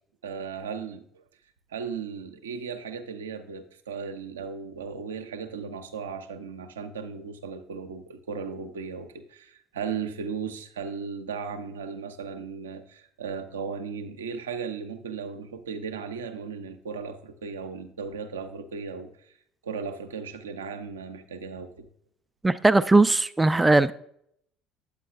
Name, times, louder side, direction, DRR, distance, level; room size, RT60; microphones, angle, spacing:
voice 1, 0.2-1.2 1.7-19.4 19.6-21.9, right 6 dB, 85° right, 0.6 m, -36 dB
voice 2, 22.4-23.9, right 2 dB, 15° right, 0.4 m, -19 dB
8.6 x 8.3 x 2.4 m
hypercardioid pair, 60°, 0 cm